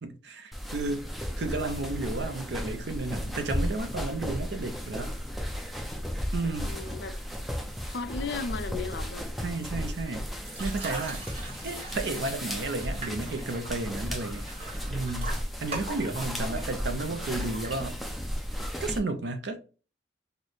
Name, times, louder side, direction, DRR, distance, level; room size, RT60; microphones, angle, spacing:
voice 1, 0.0-1.1 1.3-5.2 6.3-6.7 9.4-10.3 10.6-11.3 11.6-14.5 14.9-18.0 18.8-19.6, right 2 dB, 65° right, 0.6 m, -33 dB
sound 1, 0.5-19.0, equal, ahead, 0.4 m, -35 dB
voice 2, 6.6-7.2 7.8-9.3, left 4 dB, 65° left, 0.4 m, -35 dB
sound 2, 10.4-18.2, right 2 dB, 35° right, 1.4 m, -42 dB
3.1 x 2.1 x 3.9 m
head